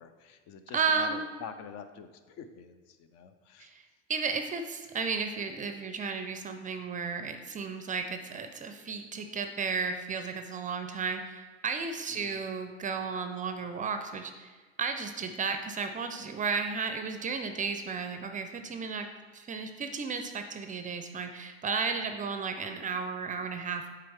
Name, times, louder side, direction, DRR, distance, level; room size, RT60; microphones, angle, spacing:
voice 1, 0.0-3.7 12.1-12.4, left 7 dB, 50° left, 9 dB, 0.7 m, -46 dB
voice 2, 0.7-1.3 3.6-3.8 4.1-14.5 14.8-19.1 19.3-23.9, right 5 dB, 25° right, 7 dB, 0.5 m, -33 dB
7.7 x 4.8 x 3.5 m, 1.4 s
hypercardioid pair, 90°, 34 cm